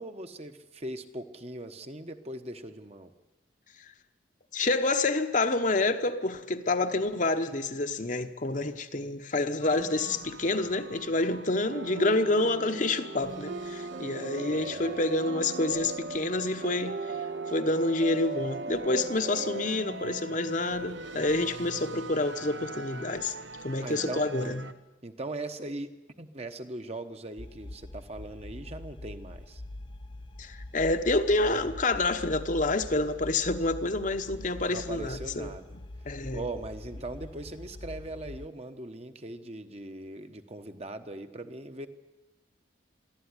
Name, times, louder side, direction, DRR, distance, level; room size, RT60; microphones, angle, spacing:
voice 1, 0.0-3.1 14.5-15.1 23.8-24.5 25.0-29.6 34.7-35.8 36.3-41.9, right 2 dB, 35° right, 1.2 m, -40 dB
voice 2, 4.5-17.0 17.5-23.3 23.6-24.6 30.4-35.5 36.1-36.4, left 2 dB, 45° left, 1.0 m, -28 dB
sound 1, 9.6-24.7, right 3 dB, 85° right, 1.0 m, -44 dB
sound 2, 11.7-19.8, right 3 dB, 50° right, 0.9 m, -38 dB
sound 3, 27.4-38.5, left 1 dB, 25° left, 0.7 m, -43 dB
23.5 x 14.0 x 9.8 m
head